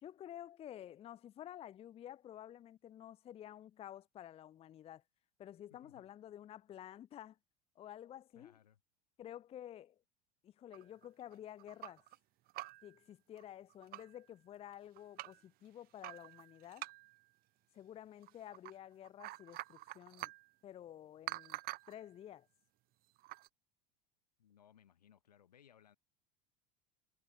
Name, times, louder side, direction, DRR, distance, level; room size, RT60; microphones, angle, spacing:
voice 1, 0.0-5.0 5.4-7.4 7.8-8.5 9.2-10.0 10.4-12.0 12.8-16.9 17.7-20.3 20.6-21.6 21.9-22.5, left 11 dB, 30° left, 0.5 m, -51 dB
voice 2, 5.7-6.1 8.3-8.8 24.4-26.0, left 9 dB, 90° left, 2.8 m, -65 dB
sound 1, 10.7-12.2 12.5-13.0 13.4-13.5 13.7-14.2 14.7-15.4 16.0-17.3 18.2-18.8 19.0-20.5 21.3-22.0 23.2-23.5, right 18 dB, 50° right, 0.8 m, -47 dB
hypercardioid pair, 85°, 20 cm